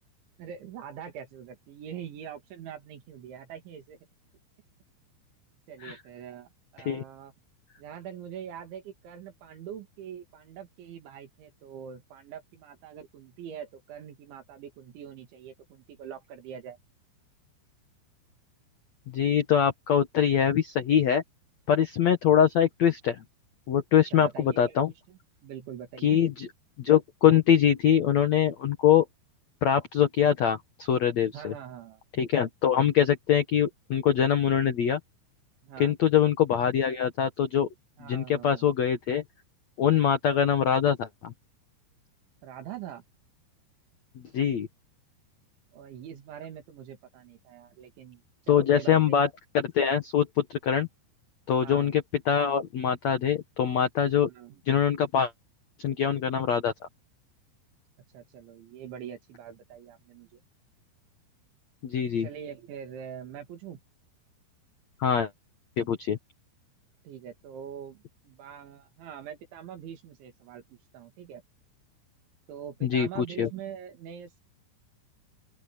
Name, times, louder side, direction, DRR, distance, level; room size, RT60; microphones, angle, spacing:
voice 1, 0.4-4.0 5.7-7.3 7.8-16.8 24.1-26.2 31.2-32.0 35.6-35.9 38.0-38.7 42.4-43.0 45.7-49.2 51.5-52.0 54.1-54.6 58.1-60.4 62.2-63.8 67.0-71.4 72.5-74.4, right 9 dB, 80° right, 4.9 m, -43 dB
voice 2, 19.1-21.2 21.7-23.2 23.7-24.9 26.0-26.5 26.8-29.0 29.6-31.5 32.2-35.0 35.8-37.7 38.1-39.2 39.8-41.3 44.3-44.7 48.5-49.3 49.5-50.9 51.5-54.3 54.6-55.3 55.8-56.7 61.8-62.3 65.0-65.3 65.8-66.2 72.8-73.5, left 9 dB, 80° left, 1.5 m, -23 dB
open air
omnidirectional pair, 5.2 m